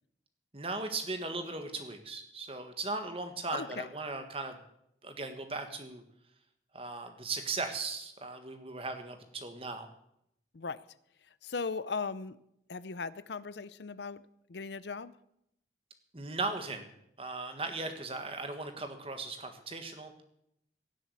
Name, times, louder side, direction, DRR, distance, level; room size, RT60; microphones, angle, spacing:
voice 1, 0.5-4.6 5.0-6.0 6.7-9.9 16.1-16.9 17.2-20.2, right 3 dB, 30° right, 7 dB, 1.7 m, -38 dB
voice 2, 3.5-3.9 10.5-10.8 11.4-12.4 12.7-14.2 14.5-15.1, left 4 dB, 70° left, 16 dB, 0.6 m, -37 dB
17.0 x 7.5 x 8.4 m, 0.77 s
head